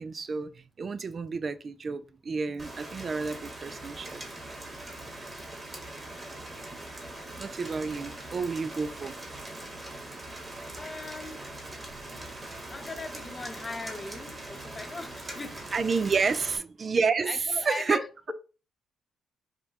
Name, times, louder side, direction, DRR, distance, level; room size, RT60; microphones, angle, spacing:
voice 1, 0.0-4.2 7.4-9.2 15.7-18.0, right 5 dB, 40° right, 0.3 m, -30 dB
Rain, 2.6-16.6, right 1 dB, 20° right, 1.2 m, -42 dB
voice 2, 10.8-11.4 12.7-15.6 17.3-18.3, left 3 dB, 25° left, 0.6 m, -39 dB
5.5 x 2.2 x 2.8 m
cardioid pair, 90°, 0 cm